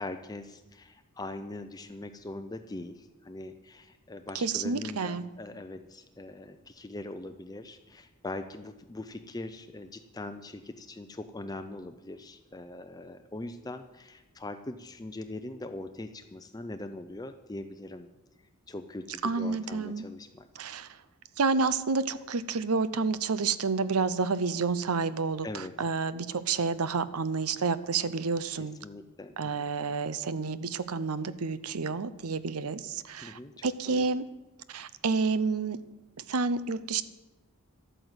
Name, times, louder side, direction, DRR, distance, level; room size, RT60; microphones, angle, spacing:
voice 1, 0.0-18.1 18.7-20.5 25.4-25.7 28.6-29.7 33.2-34.1, left 2 dB, 15° left, 8 dB, 0.5 m, -41 dB
voice 2, 4.3-5.2 19.2-20.1 20.6-21.0 21.4-28.8 29.4-34.2 34.7-35.8 36.2-37.0, right 4 dB, 85° right, 15 dB, 0.7 m, -29 dB
12.0 x 9.0 x 8.0 m, 1.1 s
head